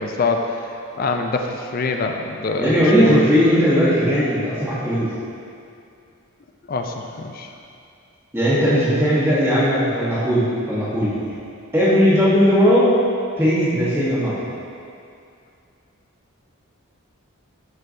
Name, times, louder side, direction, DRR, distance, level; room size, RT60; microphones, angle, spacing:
voice 1, 0.0-2.7 3.0-3.2 6.7-7.5, left 3 dB, 40° left, 3 dB, 0.4 m, -25 dB
voice 2, 2.6-5.1 8.3-11.1 11.7-12.9 13.4-14.4, equal, 10° right, -10 dB, 1.2 m, -17 dB
11.0 x 4.4 x 2.7 m, 2.5 s
head